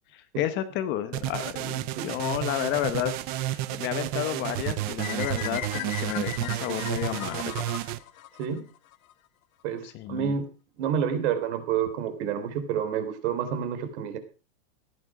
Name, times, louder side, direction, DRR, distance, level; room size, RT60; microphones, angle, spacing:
voice 1, 0.1-7.7 9.8-10.4, left 12 dB, 25° left, 12 dB, 1.0 m, -31 dB
sound 1, 1.1-8.0, right 14 dB, 25° right, 0.6 m, -31 dB
sound 2, 5.0-9.1, left 14 dB, 80° left, 1.2 m, -38 dB
voice 2, 9.6-10.5 10.8-14.2, right 8 dB, 55° right, 8 dB, 3.5 m, -29 dB
15.5 x 11.0 x 4.9 m, 0.34 s
supercardioid pair, 165°, 41 cm